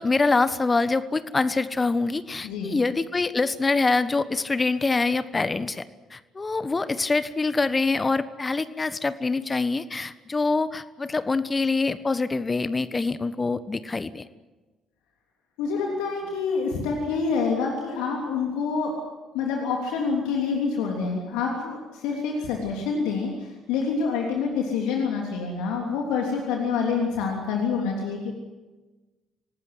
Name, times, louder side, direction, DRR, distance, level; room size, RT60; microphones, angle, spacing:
voice 1, 0.0-14.3, left 3 dB, 30° left, 14 dB, 1.2 m, -25 dB
voice 2, 2.4-2.8 15.6-19.0 19.3-28.3, left 5 dB, 70° left, 0 dB, 3.2 m, -27 dB
26.5 x 18.5 x 8.0 m, 1.2 s
figure-of-eight pair, 45°, 0 cm